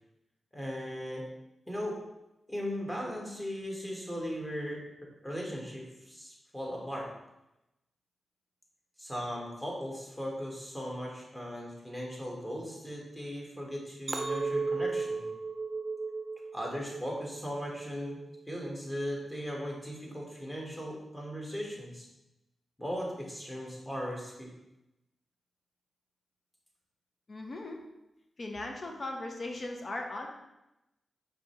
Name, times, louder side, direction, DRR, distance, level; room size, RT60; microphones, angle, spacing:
voice 1, 0.5-1.2 1.7-2.0 2.5-4.8 5.2-7.1 9.0-15.3 16.5-22.1 22.8-24.5, equal, 15° left, -2 dB, 1.7 m, -38 dB
Chink clink, 14.1-18.4 18.9-19.3, right 4 dB, 40° right, 0.6 m, -36 dB
voice 2, 27.3-27.8 28.4-30.3, left 2 dB, 50° left, 2 dB, 0.8 m, -38 dB
4.9 x 3.4 x 3.2 m, 0.92 s
cardioid pair, 50°, 0 cm